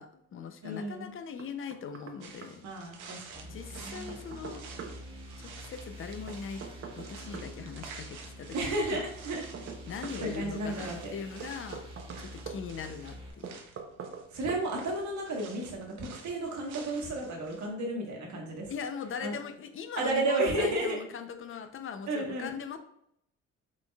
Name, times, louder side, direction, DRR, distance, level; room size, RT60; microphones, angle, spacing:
voice 1, 0.0-2.6 3.5-4.6 5.4-6.6 6.9-9.0 9.9-11.9 12.2-13.6 18.7-22.8, left 6 dB, 45° left, 8 dB, 0.6 m, -40 dB
voice 2, 0.6-1.1 2.6-4.2 8.5-9.5 10.2-11.1 14.3-18.7 19.2-19.3 20.0-21.0 22.1-22.6, right 2 dB, 70° right, 0 dB, 1.3 m, -33 dB
Knock, 1.4-2.2 2.4-2.5 3.7-5.0 6.3-7.5 9.0-10.2 11.4-12.6 13.4-14.2 14.5-14.6, right 6 dB, 45° right, 0.7 m, -43 dB
sound 1, 2.2-17.7, right 5 dB, 90° right, 0.8 m, -50 dB
sound 2, 3.3-13.3, equal, 20° right, 1.3 m, -47 dB
4.8 x 3.8 x 2.3 m, 0.73 s
cardioid pair, 90°, 30 cm